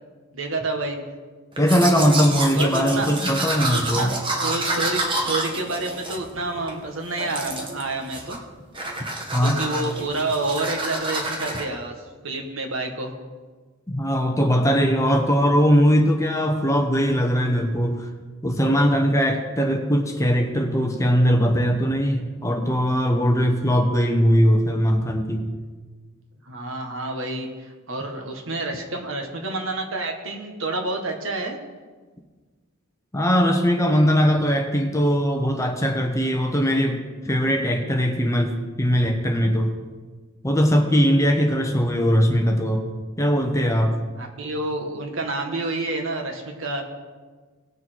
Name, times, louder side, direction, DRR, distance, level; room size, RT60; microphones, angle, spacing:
voice 1, 0.3-1.0 2.5-3.1 3.6-8.4 9.4-11.9 12.2-13.1 26.4-31.6 44.2-46.8, right 2 dB, 65° right, 3 dB, 1.5 m, -29 dB
voice 2, 1.6-4.1 9.3-9.6 13.9-18.1 18.4-25.4 33.1-39.7 40.4-42.8 43.2-44.0, equal, 15° left, 4 dB, 0.9 m, -20 dB
Domestic sounds home sounds, 1.6-6.8 7.2-7.8 8.1-8.5 8.7-11.6, right 2 dB, 25° right, 1.3 m, -28 dB
18.5 x 6.7 x 4.5 m, 1.4 s
head